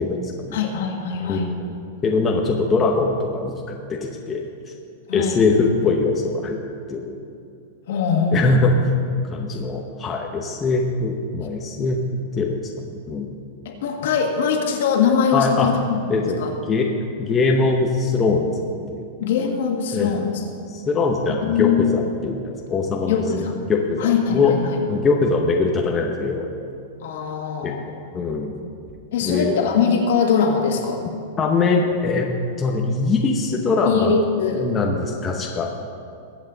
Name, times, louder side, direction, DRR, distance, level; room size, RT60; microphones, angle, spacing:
voice 1, 0.0-0.6 1.3-1.7 2.0-4.4 5.1-6.6 6.9-7.2 8.3-8.7 9.3-12.0 12.4-13.4 15.3-15.7 16.1-16.9 17.2-18.6 18.9-19.1 19.9-20.2 20.7-23.2 23.7-24.5 24.9-26.5 27.6-27.7 28.1-28.5 29.2-29.5 31.4-32.3 32.6-34.1 34.6-35.7, left 4 dB, 15° left, 0 dB, 0.9 m, -22 dB
voice 2, 0.5-1.5 5.1-5.4 7.9-8.4 13.7-15.8 16.1-16.5 19.2-20.5 21.4-21.8 23.1-23.6 24.0-24.8 27.0-27.9 29.1-31.0 33.9-34.7, left 6 dB, 65° left, 2 dB, 1.9 m, -22 dB
22.0 x 8.0 x 4.0 m, 2.4 s
supercardioid pair, 170°, 0 cm